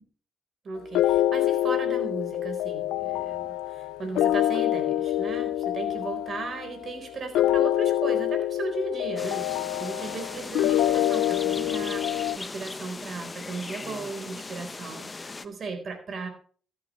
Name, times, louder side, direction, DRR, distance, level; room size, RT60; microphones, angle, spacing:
voice 1, 0.6-16.3, right 4 dB, 50° right, 6 dB, 4.1 m, -36 dB
sound 1, 0.9-12.4, left 13 dB, 90° left, 0.5 m, -26 dB
sound 2, 9.2-15.5, left 3 dB, 25° left, 0.8 m, -38 dB
14.0 x 11.0 x 3.2 m, 0.43 s
cardioid pair, 90°, 0 cm